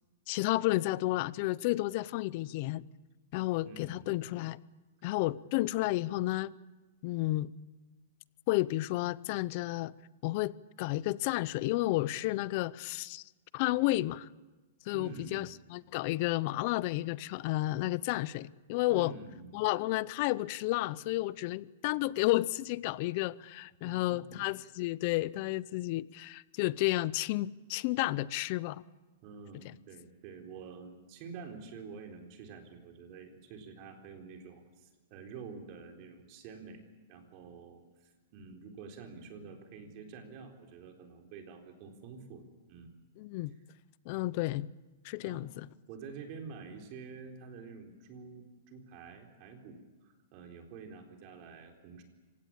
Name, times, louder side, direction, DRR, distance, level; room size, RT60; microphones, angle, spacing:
voice 1, 0.3-2.8 3.3-4.6 5.0-6.5 7.0-7.5 8.5-9.9 10.2-13.2 13.5-14.3 14.9-19.1 19.5-28.8 29.6-29.7 43.2-43.5 44.1-44.7 45.0-45.7, left 18 dB, 40° left, 0.7 m, -31 dB
voice 2, 3.6-4.1 14.9-15.5 18.9-19.5 23.9-24.2 29.2-36.8 37.1-42.9 45.2-45.5 45.9-52.0, right 5 dB, 40° right, 4.0 m, -48 dB
26.0 x 17.0 x 8.8 m
hypercardioid pair, 160°, 0 cm